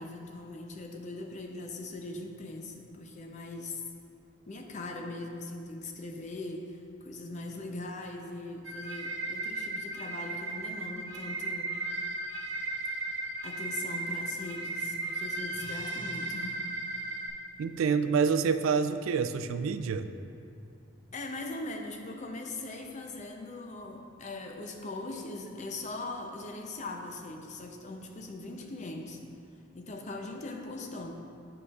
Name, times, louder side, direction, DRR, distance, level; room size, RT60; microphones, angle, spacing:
voice 1, 0.0-3.8 4.5-11.7 13.4-16.6 21.1-29.2 29.7-31.1, left 2 dB, 35° left, 3 dB, 0.5 m, -40 dB
sound 1, 8.6-17.3, right 2 dB, 65° right, 1.0 m, -36 dB
voice 2, 17.6-20.1, right 6 dB, 85° right, 10 dB, 0.3 m, -27 dB
10.0 x 4.8 x 2.4 m, 2.4 s
head